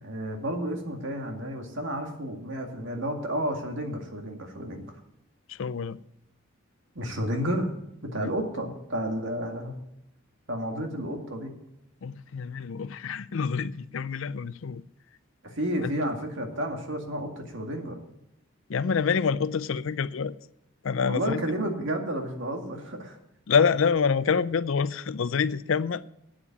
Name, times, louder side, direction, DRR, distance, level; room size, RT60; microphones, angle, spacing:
voice 1, 0.0-4.8 7.0-7.7 8.1-9.7 10.5-11.5 15.4-18.0 21.0-23.2, equal, 65° right, 2.1 m, -31 dB
voice 2, 5.5-6.0 8.2-8.3 12.0-14.8 15.8-15.9 18.7-20.3 20.8-21.4 23.5-26.0, left 6 dB, 70° left, 0.5 m, -26 dB
8.9 x 8.5 x 9.0 m
head